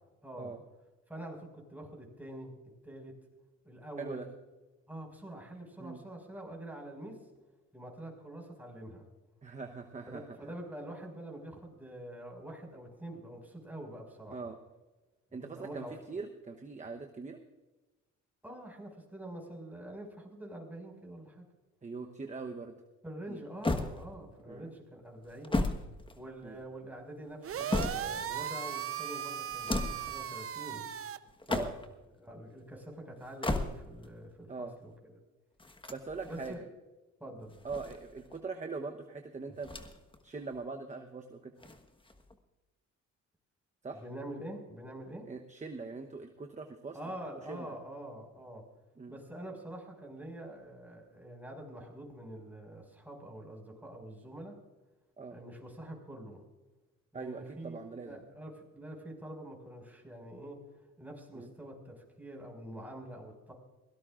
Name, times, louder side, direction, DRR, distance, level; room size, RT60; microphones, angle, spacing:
voice 1, 0.2-0.6 1.1-2.6 2.8-3.1 3.6-4.3 4.9-7.2 7.7-9.1 10.1-14.4 15.4-16.2 18.4-21.4 23.0-25.6 26.1-30.9 32.2-34.9 36.2-36.6 37.2-37.6 43.9-45.2 46.9-48.6 49.1-54.6 55.3-56.4 57.1-57.8 58.0-60.6 61.0-63.5, right 1 dB, 5° right, 0 dB, 5.5 m, -45 dB
voice 2, 4.0-4.3 5.8-6.0 9.4-10.4 14.3-14.6 15.3-17.4 21.8-22.7 23.3-23.4 24.5-24.7 26.4-26.6 31.5-31.8 34.5-34.8 35.9-36.6 37.6-39.7 40.2-41.5 43.8-44.0 45.3-47.0 47.4-47.8 49.0-49.1 55.2-55.4 57.1-58.2 61.3-61.5, right 4 dB, 25° right, 4 dB, 1.0 m, -42 dB
sound 1, 23.6-24.4 25.2-26.6 27.3-28.3 29.5-30.1 31.3-32.0 33.2-34.1 35.6-36.6 37.5-38.4 39.6-40.2 40.5-40.6 41.6-42.4, left 2 dB, 15° left, 1.3 m, -35 dB
sound 2, 27.4-31.2, right 9 dB, 50° right, 0.8 m, -37 dB
23.0 x 17.5 x 2.5 m, 1.2 s
cardioid pair, 90°, 30 cm